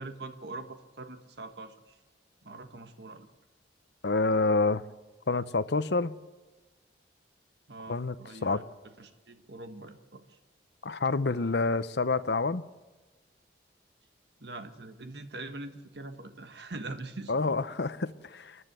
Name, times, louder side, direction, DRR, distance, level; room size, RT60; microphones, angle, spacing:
voice 1, 0.0-2.0 2.4-3.3 7.7-8.6 9.0-10.4 14.4-17.6, right 2 dB, 65° right, 1.4 m, -43 dB
voice 2, 4.0-4.8 5.3-6.2 7.9-8.2 8.4-8.6 10.8-12.6 17.3-18.6, left 3 dB, 70° left, 0.8 m, -28 dB
29.0 x 11.5 x 8.2 m
head